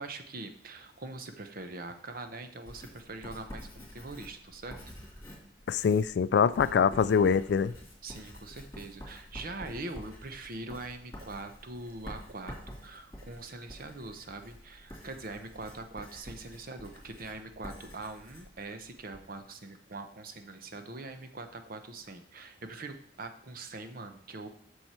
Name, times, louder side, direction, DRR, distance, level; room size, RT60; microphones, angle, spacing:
voice 1, 0.0-4.8 8.0-24.5, right 2 dB, 50° right, 0.8 m, -43 dB
Writing, 2.7-19.3, equal, 15° left, 2.8 m, -48 dB
voice 2, 5.7-7.7, left 6 dB, 65° left, 0.3 m, -24 dB
7.6 x 6.5 x 4.4 m
head